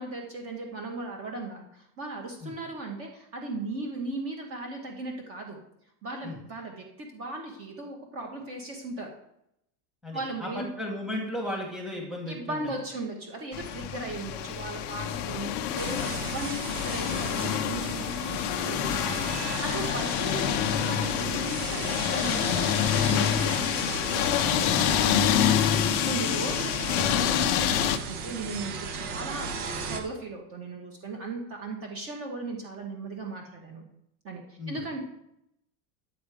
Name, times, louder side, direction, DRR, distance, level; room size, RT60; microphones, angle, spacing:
voice 1, 0.0-5.6 6.0-9.1 10.1-10.7 12.3-33.8 34.2-35.0, right 2 dB, 30° right, 1 dB, 1.5 m, -37 dB
voice 2, 10.0-12.7 26.4-26.5 34.6-34.8, left 1 dB, ahead, -2 dB, 1.6 m, -35 dB
sound 1, 13.5-28.0, left 9 dB, 30° left, 0.4 m, -27 dB
sound 2, 15.8-30.0, right 4 dB, 70° right, 1.8 m, -37 dB
11.0 x 7.8 x 4.9 m, 0.80 s
supercardioid pair, 175°, 48 cm